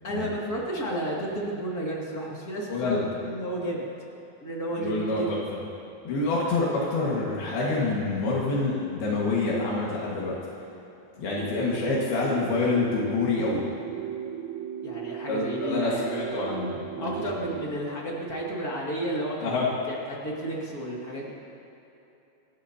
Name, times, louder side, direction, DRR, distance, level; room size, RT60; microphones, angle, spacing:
voice 1, 0.0-3.8 4.4-5.3 11.9-12.0 14.8-16.4 17.0-19.5 19.9-21.3, right 1 dB, 30° left, -4 dB, 2.4 m, -32 dB
voice 2, 2.7-3.1 4.7-5.4 6.0-10.4 11.2-13.6 15.3-17.4 19.4-19.7, left 3 dB, 75° left, -5 dB, 3.8 m, -27 dB
sound 1, 11.4-17.7, right 9 dB, 90° right, 2.6 m, -36 dB
26.5 x 14.5 x 2.9 m, 2.9 s
omnidirectional pair, 4.4 m